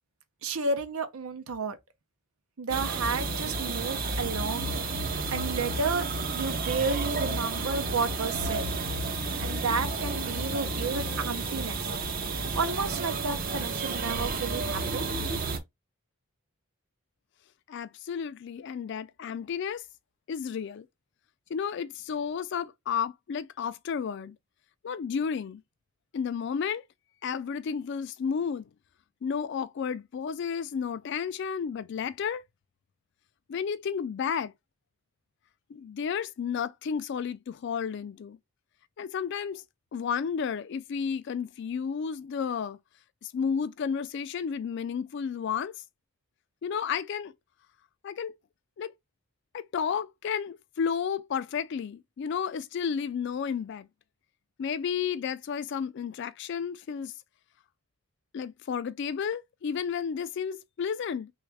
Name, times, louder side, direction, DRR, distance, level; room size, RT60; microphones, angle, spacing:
voice 1, 0.4-1.8 2.6-4.7 5.3-6.1 6.3-8.7 9.4-11.8 12.4-15.1, right 4 dB, 80° right, 0.7 m, -31 dB
sound 1, 2.7-15.6, right 3 dB, 40° right, 0.6 m, -31 dB
voice 2, 17.7-19.8 20.3-20.9 21.5-24.4 24.8-25.6 26.1-26.8 27.2-28.7 29.2-32.4 33.5-34.5 35.7-38.4 39.0-39.6 39.9-42.8 43.2-45.8 46.6-47.3 48.0-48.3 48.8-48.9 49.5-53.9 54.6-57.1 58.3-61.3, left 7 dB, 55° left, 0.3 m, -32 dB
3.4 x 2.4 x 3.2 m
head